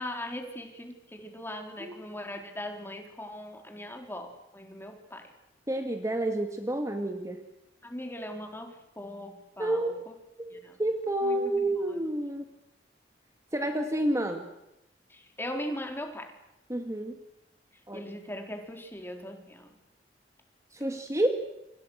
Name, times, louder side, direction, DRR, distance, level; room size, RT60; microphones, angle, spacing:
voice 1, 0.0-5.3 7.8-10.1 10.5-10.8 11.2-11.6 15.1-16.3 17.9-19.7, left 1 dB, 15° left, 4 dB, 4.1 m, -39 dB
voice 2, 5.7-7.4 9.6-10.0 10.4-12.4 13.5-14.5 16.7-17.2 17.9-18.0 20.7-21.3, right 1 dB, 20° right, 5 dB, 2.1 m, -29 dB
29.0 x 26.0 x 6.5 m, 0.89 s
head